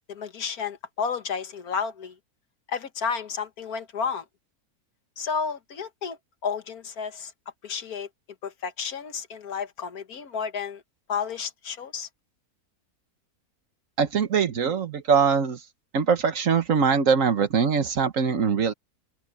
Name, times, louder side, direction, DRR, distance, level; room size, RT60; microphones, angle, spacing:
voice 1, 0.1-2.1 2.7-4.2 5.2-6.2 6.4-7.3 7.6-8.1 8.4-10.8 11.1-12.1, left 6 dB, 70° left, 1.8 m, -31 dB
voice 2, 14.0-15.7 15.9-18.7, right 6 dB, 60° right, 1.5 m, -22 dB
open air
omnidirectional pair, 1.6 m